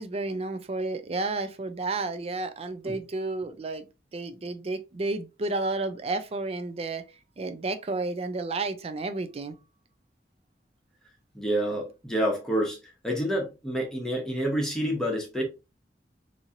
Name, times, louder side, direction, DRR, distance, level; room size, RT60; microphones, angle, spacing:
voice 1, 0.0-7.0 7.4-9.5, right 3 dB, 35° right, 0.4 m, -31 dB
voice 2, 11.3-15.4, equal, 5° left, 0.9 m, -28 dB
3.0 x 2.7 x 2.5 m
head